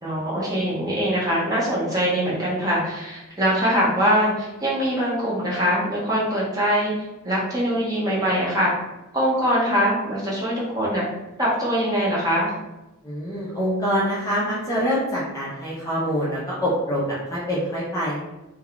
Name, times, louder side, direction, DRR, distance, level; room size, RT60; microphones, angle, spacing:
voice 1, 0.0-6.9 7.2-8.7 9.1-11.1 11.4-12.5, equal, 15° right, -6 dB, 0.8 m, -23 dB
voice 2, 13.0-18.2, equal, 15° left, -7 dB, 0.5 m, -25 dB
2.3 x 2.3 x 3.5 m, 0.99 s
head